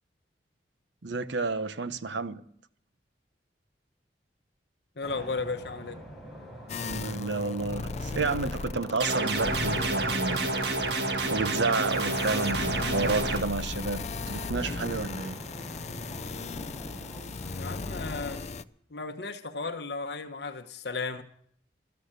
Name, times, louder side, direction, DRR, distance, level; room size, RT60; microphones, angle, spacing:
voice 1, 1.0-2.4 6.8-10.5 11.3-15.4, right 3 dB, 85° right, 0.9 m, -31 dB
voice 2, 5.0-6.0 17.6-18.4 18.9-21.2, left 4 dB, 65° left, 1.2 m, -35 dB
sound 1, 5.0-18.4, equal, ahead, 4.5 m, -45 dB
sound 2, 6.7-9.0 9.3-18.6, left 3 dB, 40° left, 0.5 m, -36 dB
sound 3, 9.0-13.4, right 2 dB, 65° right, 1.7 m, -29 dB
13.5 x 13.5 x 6.7 m
head